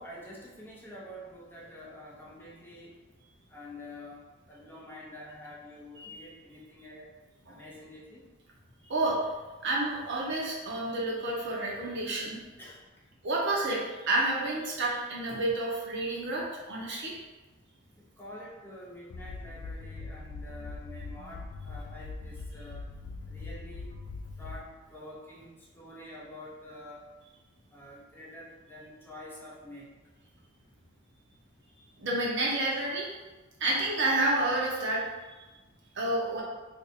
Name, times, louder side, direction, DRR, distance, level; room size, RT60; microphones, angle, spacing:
voice 1, 0.0-2.9 3.5-7.1 7.5-8.3 12.6-12.8 18.0-22.8 23.3-23.9 24.4-27.1 27.7-29.9, left 1 dB, 10° left, -5 dB, 0.6 m, -47 dB
voice 2, 8.8-9.2 9.6-12.4 13.2-17.1 32.0-33.1 33.6-35.0 36.0-36.4, right 2 dB, 60° right, -3 dB, 0.8 m, -29 dB
sound 1, 19.1-24.9, left 3 dB, 90° left, 0.3 m, -41 dB
2.6 x 2.5 x 4.1 m, 1.2 s
head